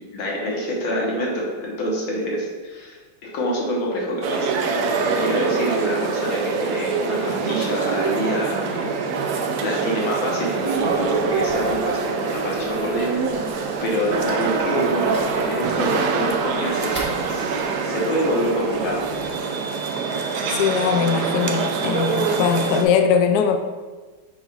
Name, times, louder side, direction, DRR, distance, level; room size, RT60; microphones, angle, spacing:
voice 1, 0.0-4.5 5.0-13.1 13.4-19.1, equal, 70° left, -3 dB, 2.0 m, -27 dB
sound 1, 4.2-22.8, right 4 dB, 75° right, 0.9 m, -24 dB
Fire, 10.6-19.4, right 1 dB, 25° right, 0.6 m, -43 dB
voice 2, 20.5-23.6, left 7 dB, 90° left, 6 dB, 0.8 m, -20 dB
7.0 x 2.4 x 5.4 m, 1.4 s
omnidirectional pair, 2.3 m